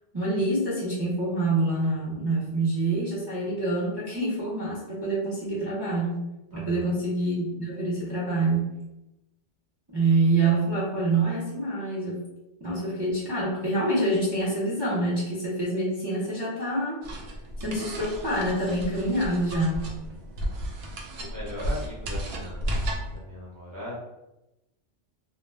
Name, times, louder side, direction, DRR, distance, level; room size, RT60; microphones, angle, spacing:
voice 1, 0.1-6.2 6.5-8.7 9.9-12.2 12.6-17.0 17.6-19.9, right 2 dB, 30° right, -7 dB, 0.6 m, -26 dB
voice 2, 6.5-6.9 21.2-22.7 23.1-23.9, left 1 dB, 20° left, -8 dB, 0.6 m, -39 dB
sound 1, 17.0-23.2, equal, 65° right, 0.8 m, -33 dB
2.5 x 2.2 x 3.2 m, 0.95 s
omnidirectional pair, 1.2 m